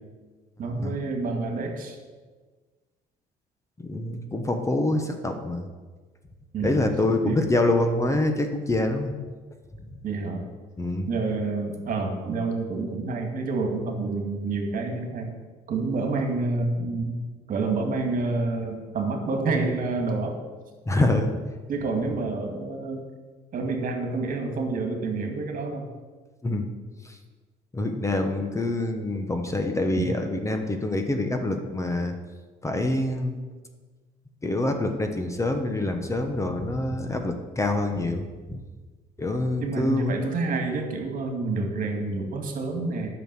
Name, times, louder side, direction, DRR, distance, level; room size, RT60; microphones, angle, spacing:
voice 1, 0.6-2.0 6.5-6.8 7.2-7.4 10.0-10.4 11.1-15.3 15.7-17.2 17.5-20.4 21.7-23.0 23.5-25.9 30.0-30.1 39.6-43.1, right 3 dB, 55° right, 4 dB, 2.1 m, -28 dB
voice 2, 3.8-5.6 6.6-9.1 10.8-11.1 20.9-21.3 26.4-26.7 27.7-32.1 32.6-33.4 34.4-38.6 39.2-40.1, left 2 dB, 15° left, 5 dB, 1.0 m, -26 dB
9.1 x 6.2 x 7.6 m, 1.4 s
cardioid pair, 110°, 17 cm